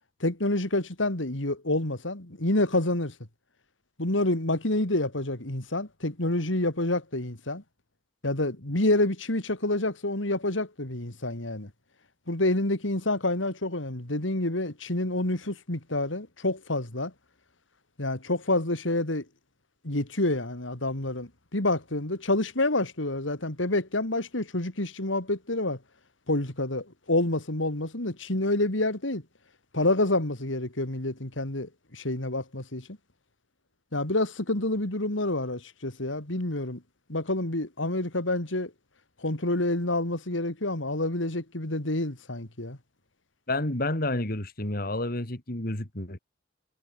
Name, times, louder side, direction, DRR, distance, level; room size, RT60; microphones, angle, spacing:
voice 1, 0.2-3.1 4.0-7.6 8.2-11.7 12.3-17.1 18.0-19.3 19.8-25.8 26.3-29.2 29.7-32.9 33.9-36.8 37.1-38.7 39.2-42.8, left 2 dB, 90° left, 3.4 m, -28 dB
voice 2, 43.5-46.2, left 1 dB, 50° left, 3.3 m, -30 dB
head